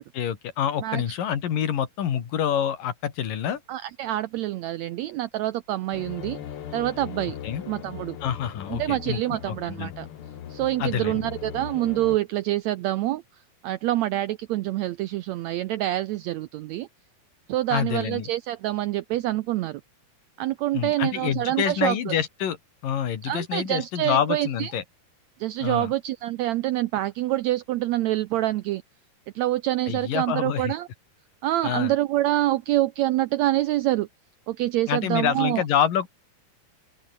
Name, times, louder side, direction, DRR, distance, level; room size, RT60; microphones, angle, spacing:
voice 1, 0.0-3.6 7.4-7.6 8.2-9.9 10.8-11.3 17.7-18.3 20.7-22.6 22.8-24.8 25.6-25.9 29.9-30.7 31.6-31.9 34.9-36.1, left 9 dB, 75° left, 3.9 m, -27 dB
voice 2, 0.8-1.2 3.7-6.4 6.7-7.4 7.7-8.2 8.7-10.1 10.5-13.2 13.6-16.9 17.5-19.8 20.4-22.1 23.2-24.7 25.4-28.8 29.3-30.9 31.4-34.1 34.5-35.6, right 15 dB, 90° right, 1.6 m, -26 dB
sound 1, 5.9-12.2, left 10 dB, 55° left, 1.7 m, -39 dB
open air
omnidirectional pair, 3.9 m